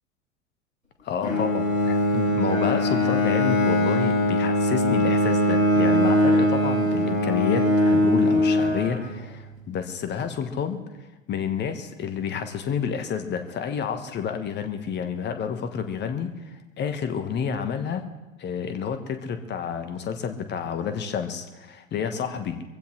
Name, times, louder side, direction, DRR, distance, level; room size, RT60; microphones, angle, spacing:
voice 1, 1.0-10.8 11.3-18.0 18.4-22.6, left 7 dB, 25° left, 8 dB, 1.4 m, -29 dB
Bowed string instrument, 1.2-9.4, left 1 dB, 90° right, 6.9 m, -21 dB
23.5 x 15.5 x 3.2 m, 1.1 s
figure-of-eight pair, 90°, 40 cm